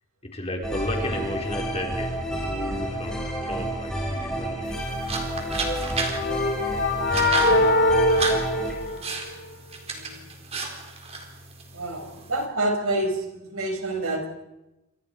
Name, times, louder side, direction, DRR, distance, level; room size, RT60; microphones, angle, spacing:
voice 1, 0.3-4.9, left 1 dB, 30° left, 1 dB, 4.5 m, -33 dB
sound 1, 0.6-8.7, right 1 dB, 5° left, 6.1 m, -30 dB
sound 2, 4.6-12.5, right 3 dB, 30° right, 4.0 m, -34 dB
sound 3, 5.5-9.4, left 1 dB, 45° left, 2.9 m, -23 dB
voice 2, 8.9-9.2 9.9-10.3 11.7-14.3, right 1 dB, 75° right, 3 dB, 6.0 m, -28 dB
29.0 x 27.0 x 4.8 m, 0.94 s
head